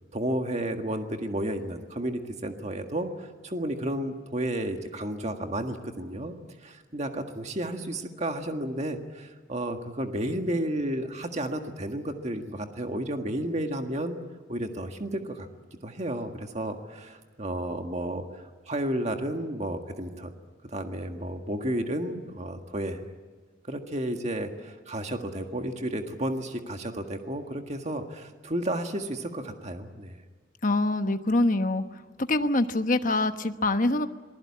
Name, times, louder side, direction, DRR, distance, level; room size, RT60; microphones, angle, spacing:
voice 1, 0.1-6.3 6.6-14.2 14.5-15.5 15.8-20.3 20.7-23.0 23.6-30.2, right 1 dB, 35° right, 5 dB, 1.7 m, -32 dB
voice 2, 30.6-32.0 32.3-34.1, left 2 dB, 40° left, 8 dB, 1.1 m, -25 dB
27.0 x 20.5 x 8.6 m, 1.4 s
head